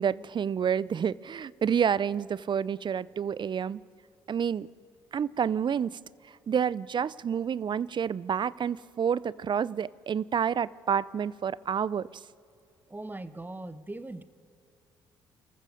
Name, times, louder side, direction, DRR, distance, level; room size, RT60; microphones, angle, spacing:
voice 1, 0.0-3.8 4.3-4.7 5.1-6.0 6.5-12.1, right 7 dB, 45° right, 22 dB, 0.5 m, -29 dB
voice 2, 12.9-14.2, right 2 dB, 15° right, 14 dB, 1.1 m, -40 dB
27.0 x 15.0 x 6.5 m, 2.4 s
hypercardioid pair, 50°, 11 cm